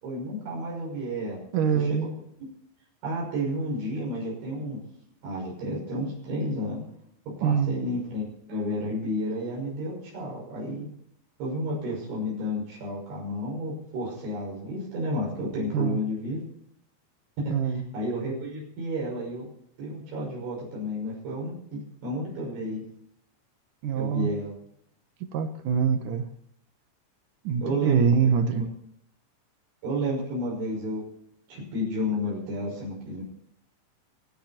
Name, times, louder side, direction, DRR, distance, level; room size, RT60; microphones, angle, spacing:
voice 1, 0.0-1.4 1.7-2.1 3.0-4.8 5.2-6.8 7.4-10.9 11.4-16.4 17.4-19.4 19.8-22.8 24.0-24.5 27.6-28.1 28.5-28.7 29.8-31.0 31.5-33.2, equal, 85° right, -3 dB, 8.5 m, -31 dB
voice 2, 1.5-2.1 7.4-7.7 15.7-16.0 17.5-17.8 23.8-24.3 25.3-26.3 27.4-28.7, right 7 dB, 65° right, 8 dB, 2.1 m, -24 dB
24.5 x 10.0 x 4.4 m, 0.73 s
omnidirectional pair, 5.2 m